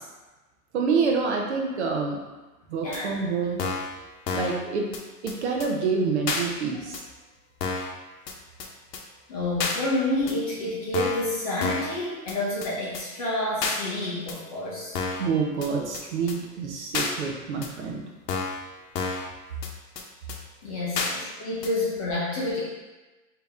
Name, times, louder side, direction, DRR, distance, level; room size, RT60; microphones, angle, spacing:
voice 1, 0.7-2.2 2.7-3.6 4.3-4.9 5.2-7.0 15.1-18.1, right 5 dB, 45° right, 0 dB, 0.6 m, -27 dB
sound 1, 2.9-3.0 3.6-3.9 4.3-4.6 4.9-5.0 5.3-5.4 5.6-5.7 6.3-6.4 6.9-7.0 7.6-7.9 8.3-8.4 8.6-8.7 8.9-9.0 9.6-9.8 10.3-10.4 10.9-11.3 11.6-11.9 12.3-12.4 12.6-12.7 12.9-13.0 13.6-13.8 14.3-14.4 15.0-15.3 15.6-15.7 15.9-16.0 16.3-16.4 16.9-17.1 17.6-17.7 18.3-18.6 19.0-19.3 19.6-19.7 20.0-20.1 20.3-20.4 21.0-21.1 21.6-21.7, left 4 dB, 80° left, 0.8 m, -29 dB
voice 2, 9.3-14.9 20.6-22.6, left 1 dB, 25° left, -6 dB, 0.5 m, -29 dB
3.4 x 2.9 x 3.4 m, 1.2 s
hypercardioid pair, 150°, 48 cm